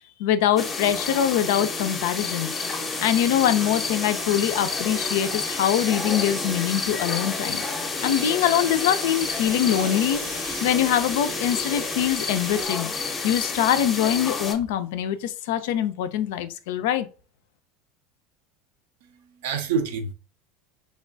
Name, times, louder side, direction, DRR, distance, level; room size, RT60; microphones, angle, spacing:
voice 1, 0.2-2.5 3.0-7.6 8.0-10.2 10.6-12.9 13.2-17.1, left 10 dB, 70° left, 0.3 m, -23 dB
sound 1, 0.6-14.5, left 4 dB, 25° left, 0.6 m, -30 dB
sound 2, 1.1-12.7, right 1 dB, 10° right, 0.5 m, -39 dB
sound 3, 8.0-13.2, right 2 dB, 85° right, 0.8 m, -41 dB
voice 2, 19.0-20.1, right 6 dB, 70° right, 0.4 m, -28 dB
3.0 x 2.2 x 2.5 m
hypercardioid pair, 80°, 0 cm